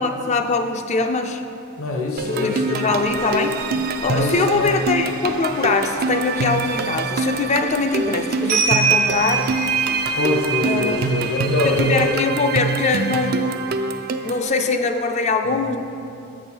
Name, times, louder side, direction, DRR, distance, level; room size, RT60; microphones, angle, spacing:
voice 1, 0.0-1.4 2.2-3.6 4.0-9.5 10.6-11.0 11.6-13.5 14.2-15.8, left 4 dB, 30° left, 7 dB, 0.4 m, -22 dB
voice 2, 1.8-2.9 4.1-4.8 10.1-12.1 15.4-15.8, left 2 dB, 65° left, 0 dB, 1.0 m, -24 dB
sound 1, 2.2-14.5, right 4 dB, 45° right, 0.3 m, -26 dB
sound 2, 3.0-12.1, right 5 dB, 85° right, 1.1 m, -26 dB
6.8 x 6.2 x 4.4 m, 2.6 s
head